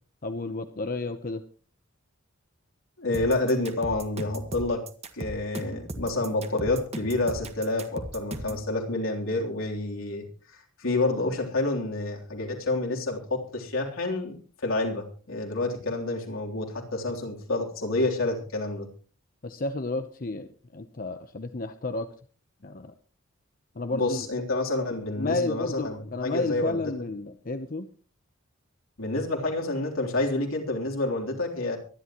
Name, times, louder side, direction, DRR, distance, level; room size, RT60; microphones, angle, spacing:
voice 1, 0.2-1.4 19.4-22.1 22.6-22.9 23.7-24.3 25.2-27.9, left 2 dB, 45° left, 8 dB, 0.8 m, -31 dB
voice 2, 3.0-4.9 5.1-18.9 23.9-26.8 29.0-31.8, left 2 dB, 75° left, 0 dB, 3.5 m, -28 dB
sound 1, 3.1-8.6, right 1 dB, 30° right, 1.6 m, -37 dB
24.0 x 11.0 x 3.0 m, 0.39 s
head